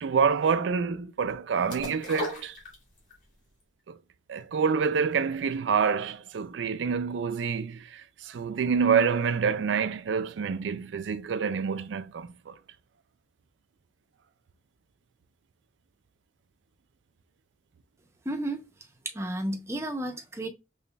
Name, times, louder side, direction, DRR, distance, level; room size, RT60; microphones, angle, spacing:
voice 1, 0.0-2.5 4.3-12.5, right 6 dB, 80° right, 0.4 m, -27 dB
sound 1, 1.7-3.2 3.6-3.7, left 3 dB, 45° left, 1.9 m, -37 dB
voice 2, 18.2-18.6 19.1-20.5, right 1 dB, 15° right, 0.6 m, -32 dB
5.4 x 3.1 x 2.2 m
head